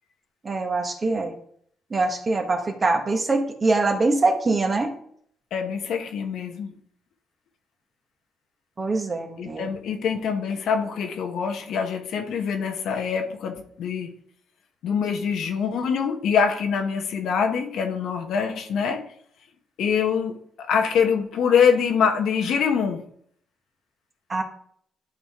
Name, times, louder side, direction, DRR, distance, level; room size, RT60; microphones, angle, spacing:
voice 1, 0.4-1.3 1.9-4.9 8.8-9.7 24.3-24.4, right 3 dB, 35° right, 4 dB, 1.4 m, -23 dB
voice 2, 5.5-6.7 9.4-14.1 14.8-19.0 19.8-23.0, left 6 dB, 75° left, 4 dB, 1.2 m, -24 dB
11.0 x 4.1 x 3.7 m, 0.63 s
cardioid pair, 85°, 0 cm